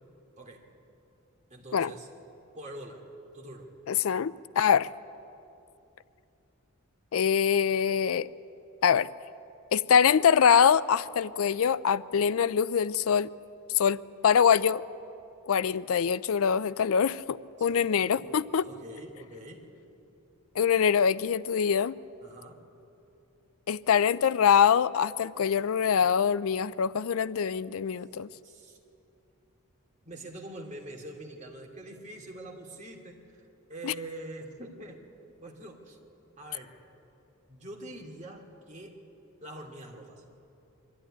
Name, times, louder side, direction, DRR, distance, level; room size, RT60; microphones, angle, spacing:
voice 1, 0.4-0.7 1.5-2.1 2.5-3.1 3.3-3.7 17.6-18.3 18.6-19.7 22.2-22.6 28.4-28.8 30.0-35.0 35.4-36.0 36.4-36.8 37.5-39.0 39.4-40.2, right 1 dB, 30° right, 1 dB, 2.5 m, -44 dB
voice 2, 3.9-4.9 7.1-8.3 8.8-9.1 9.7-13.3 13.7-14.8 15.5-18.7 20.6-21.9 23.7-28.3 33.8-33.9, left 7 dB, 70° left, 18 dB, 0.4 m, -24 dB
24.0 x 13.5 x 10.0 m, 2.8 s
head